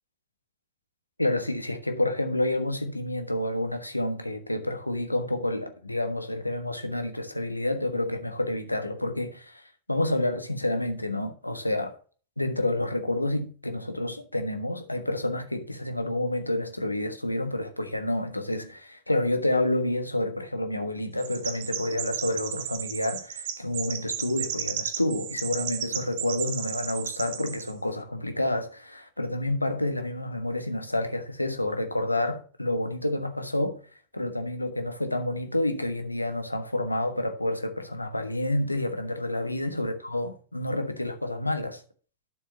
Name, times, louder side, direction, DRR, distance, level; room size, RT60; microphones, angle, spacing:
voice 1, 1.2-9.6 9.9-12.0 12.4-33.8 34.1-41.8, left 1 dB, 85° left, 1.3 m, -29 dB
Chirp tweet, 21.2-27.7, right 10 dB, 50° right, 1.1 m, -34 dB
12.0 x 6.8 x 2.8 m
figure-of-eight pair, 90°, 0 cm